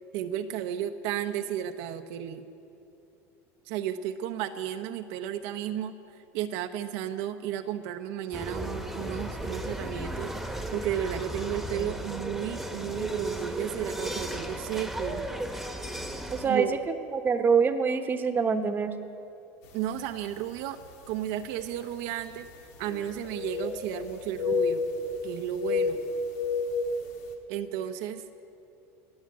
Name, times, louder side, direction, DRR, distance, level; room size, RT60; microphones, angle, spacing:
voice 1, 0.1-2.4 3.7-10.3 10.7-15.2 16.4-16.7 19.7-20.8 21.1-22.5 22.8-24.9 25.2-26.0 27.5-28.2, right 10 dB, 70° right, 7 dB, 0.7 m, -33 dB
sound 1, 8.3-16.5, right 1 dB, ahead, 1.3 m, -35 dB
voice 2, 16.3-16.7 17.1-18.9, right 5 dB, 25° right, 8 dB, 1.0 m, -25 dB
sound 2, 19.9-20.1 20.8-20.9 22.8-24.1 24.3-25.2 25.6-27.0, left 5 dB, 75° left, 1.9 m, -30 dB
19.5 x 7.3 x 8.6 m, 2.7 s
supercardioid pair, 115°, 8 cm